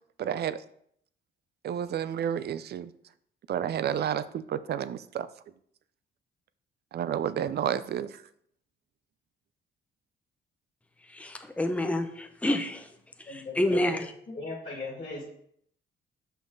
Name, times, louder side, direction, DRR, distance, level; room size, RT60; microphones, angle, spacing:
voice 1, 0.2-0.6 1.6-2.9 3.5-5.3 6.9-8.2, right 9 dB, 55° right, 14 dB, 0.5 m, -30 dB
voice 2, 11.1-12.9 13.2-14.1, left 1 dB, 5° left, 6 dB, 0.7 m, -28 dB
voice 3, 13.3-13.9 14.3-15.3, left 3 dB, 35° left, -4 dB, 2.0 m, -38 dB
6.0 x 5.4 x 3.9 m, 0.66 s
cardioid pair, 90°, 20 cm